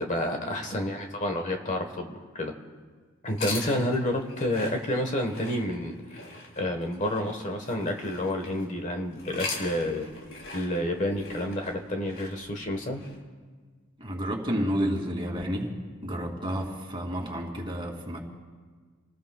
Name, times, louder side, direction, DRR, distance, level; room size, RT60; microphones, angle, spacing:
voice 1, 0.0-2.5 3.2-6.2 6.6-10.1 10.5-13.0, left 1 dB, 35° left, 4 dB, 1.3 m, -29 dB
sound 1, 3.3-8.6 9.1-13.2, left 3 dB, 60° left, 3.0 m, -41 dB
voice 2, 14.0-15.7 16.0-18.2, equal, 25° right, -1 dB, 2.7 m, -30 dB
28.5 x 19.5 x 2.3 m, 1.5 s
head